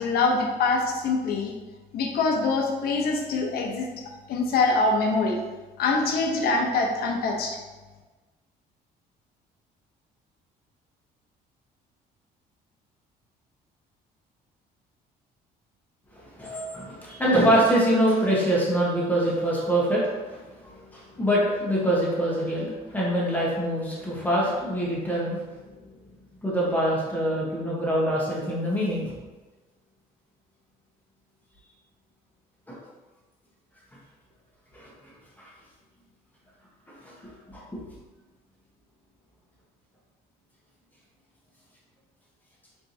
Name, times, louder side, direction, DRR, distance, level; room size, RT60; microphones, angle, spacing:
voice 1, 0.0-1.5 1.9-3.9 4.3-5.4 5.8-7.6, left 3 dB, 65° left, 1 dB, 0.8 m, -24 dB
voice 2, 16.1-25.4 26.4-29.1 32.7-32.8 34.7-34.9 35.4-35.5 36.9-37.1 37.5-37.8, equal, 10° left, -6 dB, 1.2 m, -25 dB
4.4 x 3.3 x 2.7 m, 1.2 s
cardioid pair, 110°, 17 cm